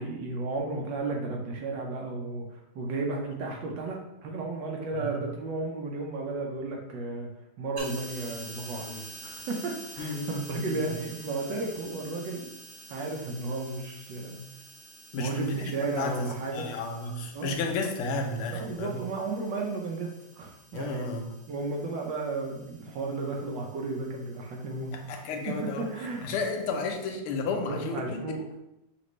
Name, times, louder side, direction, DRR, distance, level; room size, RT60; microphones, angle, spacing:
voice 1, 0.0-7.3 7.6-12.5 12.9-14.4 15.2-16.7 17.3-17.6 18.5-21.1 21.5-25.1 25.8-26.3 27.7-28.6, right 3 dB, 70° right, 0 dB, 1.2 m, -34 dB
sound 1, 7.8-27.1, right 2 dB, 45° right, 1.1 m, -49 dB
voice 2, 10.0-10.4 10.8-10.9 15.1-16.2 16.5-19.0 20.7-21.4 24.9-25.9 26.2-28.2, left 3 dB, 85° left, 4 dB, 1.5 m, -32 dB
5.9 x 2.5 x 3.1 m, 0.88 s
omnidirectional pair, 2.4 m